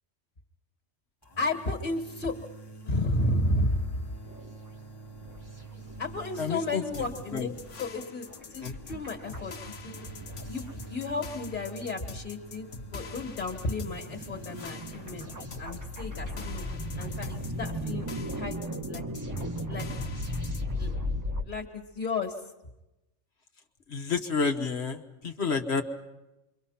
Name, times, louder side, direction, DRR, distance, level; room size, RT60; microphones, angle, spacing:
sound 1, 1.2-17.4, right 3 dB, 20° left, 1.4 m, -48 dB
voice 1, 1.4-2.3 2.9-4.1 6.0-10.1 10.5-15.3 15.6-16.6 17.0-19.0 19.7-19.9 20.8-21.0 21.4-22.3, left 2 dB, 40° left, 2 dB, 2.1 m, -33 dB
sound 2, 4.3-4.6 5.1-6.3 6.5-6.6 6.8-11.7 12.1-12.2 12.7-21.4, equal, 15° right, 1.2 m, -37 dB
voice 2, 6.4-6.8 7.3-7.5 8.6-8.7 23.9-25.8, left 5 dB, 65° left, 4 dB, 1.5 m, -29 dB
sound 3, 6.9-20.6, left 5 dB, 80° left, 1.4 m, -46 dB
28.0 x 23.5 x 5.8 m, 0.97 s
omnidirectional pair, 1.2 m